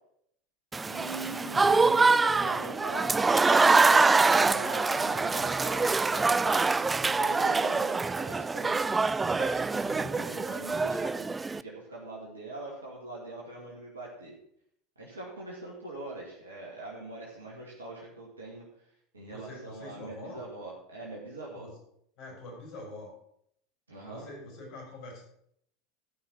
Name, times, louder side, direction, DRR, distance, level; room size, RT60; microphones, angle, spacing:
Applause / Crowd, 0.7-11.6, right 4 dB, 15° right, 0.3 m, -25 dB
voice 1, 0.9-14.3 15.0-18.6 19.1-21.7 23.9-24.3, right 2 dB, 85° right, -4 dB, 2.4 m, -42 dB
voice 2, 9.8-10.2 19.3-20.4 21.6-21.7 22.2-23.1 24.1-25.2, left 2 dB, 55° left, 1 dB, 5.3 m, -45 dB
13.0 x 5.8 x 6.1 m, 0.70 s
figure-of-eight pair, 80°, 0 cm